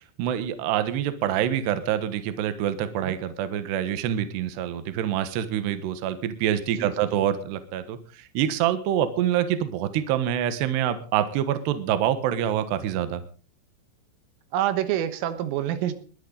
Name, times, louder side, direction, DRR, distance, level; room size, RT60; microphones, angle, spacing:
voice 1, 0.2-13.2, right 10 dB, 70° right, 11 dB, 3.2 m, -26 dB
voice 2, 14.5-15.9, right 11 dB, 85° right, 11 dB, 3.9 m, -27 dB
20.5 x 13.5 x 4.0 m, 0.39 s
omnidirectional pair, 5.7 m